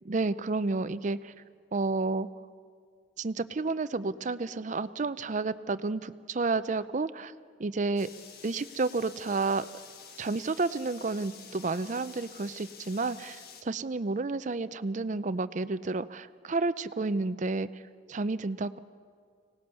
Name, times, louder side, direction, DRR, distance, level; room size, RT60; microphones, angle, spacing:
voice 1, 0.1-1.3 1.7-2.3 3.2-7.3 7.6-8.1 8.4-9.7 10.2-17.8 18.1-18.8, right 3 dB, 40° right, 14 dB, 0.5 m, -31 dB
sound 1, 8.0-13.6, left 6 dB, 55° left, 1.3 m, -49 dB
24.5 x 18.5 x 6.9 m, 2.1 s
head